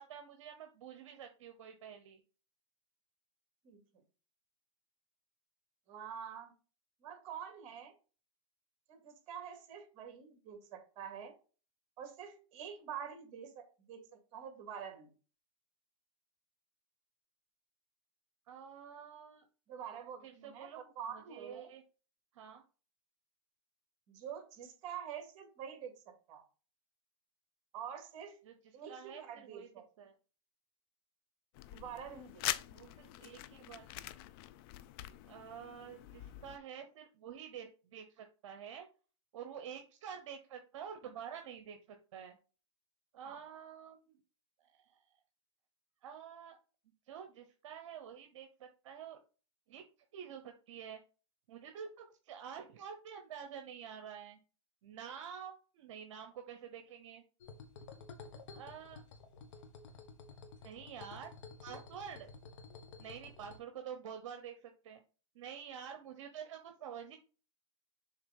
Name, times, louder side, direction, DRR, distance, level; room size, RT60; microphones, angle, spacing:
voice 1, 0.0-2.2 18.5-19.4 20.2-21.8 22.3-22.6 28.4-28.5 28.9-29.7 30.0-30.1 32.7-33.9 35.3-38.9 39.3-42.4 43.1-44.2 44.6-45.0 46.0-46.6 47.1-49.2 49.7-49.8 50.1-51.0 51.5-54.4 54.8-57.2 58.5-59.0 60.6-61.3 61.6-62.3 63.0-65.0 65.3-67.2, right 8 dB, 65° right, 6 dB, 1.0 m, -48 dB
voice 2, 3.6-4.0 5.9-6.5 7.0-7.9 8.9-11.3 12.0-15.1 19.7-21.7 24.1-26.4 27.7-28.4 28.7-29.9 31.7-32.4 43.2-43.4, right 8 dB, 40° right, 4 dB, 2.4 m, -47 dB
sound 1, 31.5-36.6, left 15 dB, 45° left, 0.5 m, -44 dB
sound 2, 57.4-63.6, left 4 dB, 70° left, 1.7 m, -52 dB
7.1 x 3.6 x 5.4 m, 0.36 s
hypercardioid pair, 140°, 17 cm